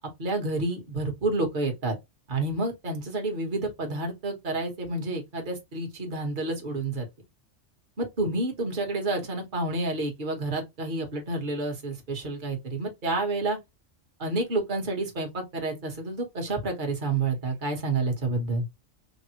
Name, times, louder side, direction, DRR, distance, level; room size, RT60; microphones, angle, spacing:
voice 1, 0.2-2.0 2.3-7.1 8.0-13.6 14.2-18.7, right 2 dB, 45° right, 1.3 m, -29 dB
5.1 x 2.1 x 2.8 m
omnidirectional pair, 1.2 m